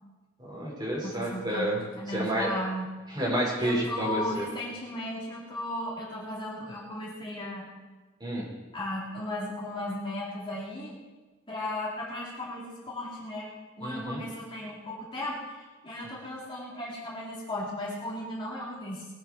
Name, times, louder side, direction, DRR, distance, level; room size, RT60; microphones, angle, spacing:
voice 1, 0.4-1.8 2.1-2.5 3.1-4.5 8.2-8.5 13.8-14.2, right 1 dB, 20° right, -5 dB, 5.6 m, -29 dB
voice 2, 1.0-2.9 3.6-7.7 8.7-11.0 11.5-13.5 13.8-19.1, left 1 dB, 25° left, -6 dB, 4.0 m, -36 dB
22.0 x 9.6 x 4.7 m, 1.3 s
head